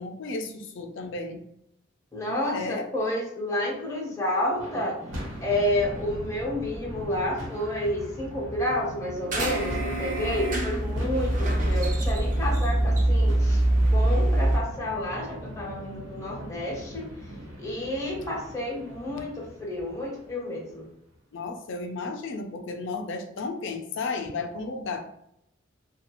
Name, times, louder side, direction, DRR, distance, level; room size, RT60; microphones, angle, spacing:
voice 1, 0.0-1.4 2.3-2.8 21.3-25.0, left 3 dB, 65° left, 5 dB, 0.4 m, -33 dB
voice 2, 2.1-5.0 5.4-13.6 13.9-17.1 17.6-20.9, left 1 dB, 15° left, -4 dB, 0.7 m, -30 dB
sound 1, 4.5-20.9, equal, 80° right, 1.1 m, -40 dB
sound 2, 9.3-14.6, right 1 dB, 40° right, 0.6 m, -24 dB
2.5 x 2.3 x 2.9 m, 0.77 s
head